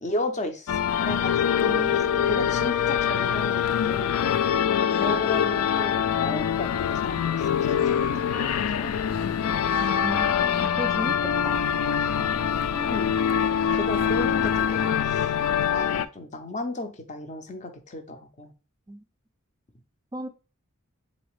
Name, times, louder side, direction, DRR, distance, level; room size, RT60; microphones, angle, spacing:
voice 1, 0.0-4.4 4.9-9.0 12.7-13.2 13.7-15.3 15.7-18.5, left 2 dB, 35° left, 7 dB, 0.6 m, -34 dB
sound 1, 0.7-16.1, left 8 dB, 75° left, 0.3 m, -24 dB
voice 2, 1.6-2.4 10.0-11.6 18.9-19.0 20.1-20.3, right 1 dB, 15° right, 8 dB, 0.3 m, -35 dB
3.9 x 3.9 x 3.1 m, 0.33 s
head